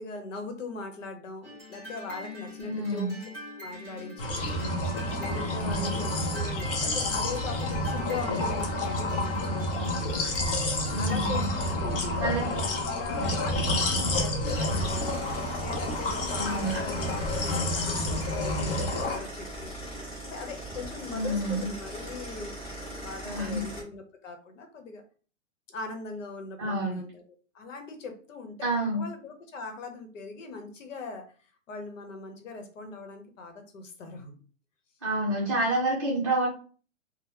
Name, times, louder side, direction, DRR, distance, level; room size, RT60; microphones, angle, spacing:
voice 1, 0.0-4.5 5.2-9.7 10.9-19.8 20.2-22.6 22.9-25.0 25.7-27.2 27.5-28.7 28.9-31.3 31.7-34.4, left 4 dB, 75° left, 6 dB, 0.9 m, -40 dB
sound 1, 1.4-11.4, left 1 dB, 5° left, 0.8 m, -44 dB
voice 2, 2.6-3.1 5.6-6.0 10.9-11.5 12.2-12.4 16.4-16.8 21.1-21.7 23.2-23.6 26.6-27.0 28.6-29.0 35.0-36.5, right 1 dB, 25° right, -6 dB, 0.6 m, -29 dB
sound 2, 4.2-19.2, left 1 dB, 45° left, 0.7 m, -29 dB
sound 3, 14.4-23.8, right 1 dB, 30° left, 1.0 m, -40 dB
2.9 x 2.1 x 3.3 m, 0.41 s
hypercardioid pair, 180°, 38 cm